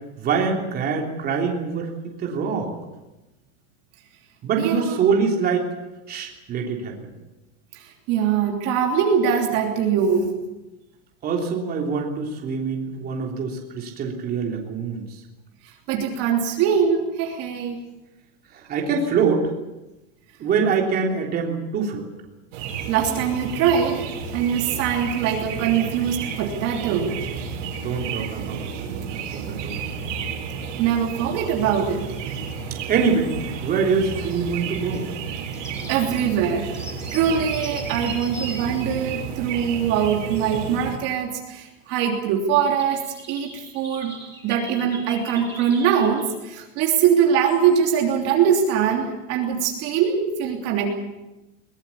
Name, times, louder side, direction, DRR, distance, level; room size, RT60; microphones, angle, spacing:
voice 1, 0.2-2.7 4.4-5.7 6.1-7.0 11.2-15.2 18.5-19.5 20.4-22.1 27.8-30.1 32.9-33.4 33.6-35.1, right 5 dB, 25° right, 0 dB, 3.4 m, -24 dB
voice 2, 4.6-4.9 7.7-10.3 15.9-17.8 22.9-24.1 24.3-27.2 30.8-32.0 35.6-43.0 43.3-44.1 44.4-50.9, right 7 dB, 40° right, 1 dB, 3.2 m, -22 dB
sound 1, 22.5-41.0, right 6 dB, 70° right, 5.2 m, -32 dB
sound 2, 32.9-33.8 34.1-35.0 35.4-39.6 40.3-40.9 41.2-41.4 41.8-41.9 42.4-46.3 47.1-47.2 47.5-48.3 48.6-48.9, equal, 5° left, 7.2 m, -42 dB
22.5 x 20.5 x 7.2 m, 1.0 s
supercardioid pair, 160°, 38 cm